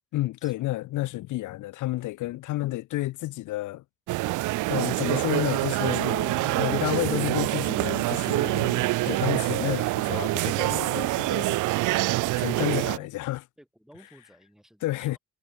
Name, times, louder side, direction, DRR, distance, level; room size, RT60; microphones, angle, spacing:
voice 1, 0.1-3.8 4.7-11.6 12.4-13.4 14.8-15.2, left 17 dB, 80° left, 0.7 m, -31 dB
sound 1, 4.1-13.0, right 19 dB, 80° right, 0.5 m, -26 dB
voice 2, 13.6-15.2, equal, ahead, 5.1 m, -55 dB
cardioid pair, 90°, 30 cm